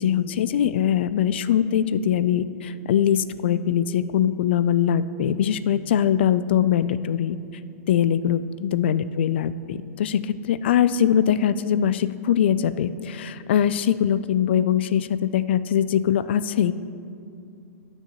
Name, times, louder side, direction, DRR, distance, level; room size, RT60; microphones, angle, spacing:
voice 1, 0.0-7.4 7.9-16.7, left 9 dB, 45° left, 15 dB, 0.3 m, -22 dB
14.5 x 9.7 x 3.0 m, 2.5 s
hypercardioid pair, 175°, 8 cm